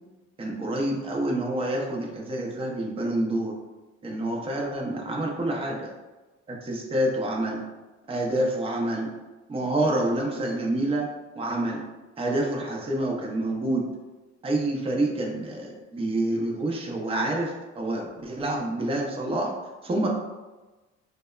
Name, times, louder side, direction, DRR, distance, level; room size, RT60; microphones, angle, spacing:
voice 1, 0.4-3.5 4.0-5.9 6.5-7.6 8.1-9.1 9.5-11.1 11.4-11.8 12.2-13.8 14.4-19.5 19.8-20.1, right 1 dB, 15° right, -1 dB, 0.5 m, -27 dB
2.7 x 2.1 x 2.3 m, 1.2 s
supercardioid pair, 70°, 32 cm